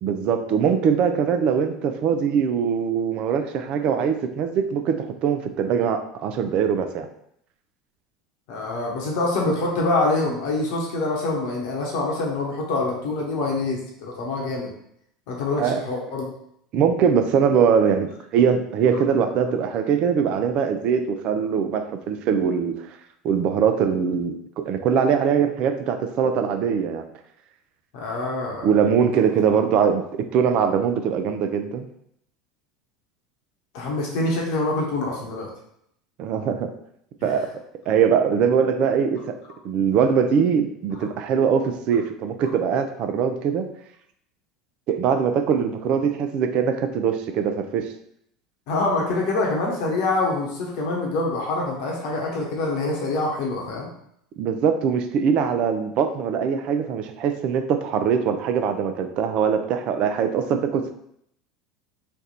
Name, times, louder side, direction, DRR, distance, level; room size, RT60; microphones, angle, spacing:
voice 1, 0.0-7.1 15.6-15.8 16.7-22.7 23.2-27.0 28.6-30.0 30.3-31.9 36.2-36.7 37.2-37.5 37.9-39.4 39.6-43.6 44.9-47.9 54.4-60.9, right 7 dB, 55° right, 7 dB, 0.5 m, -22 dB
voice 2, 8.5-14.7 15.3-16.3 27.9-28.7 33.7-35.5 37.2-37.3 48.7-53.9, left 2 dB, 65° left, -2 dB, 1.1 m, -25 dB
3.3 x 2.5 x 4.2 m, 0.72 s
hypercardioid pair, 80°, 2 cm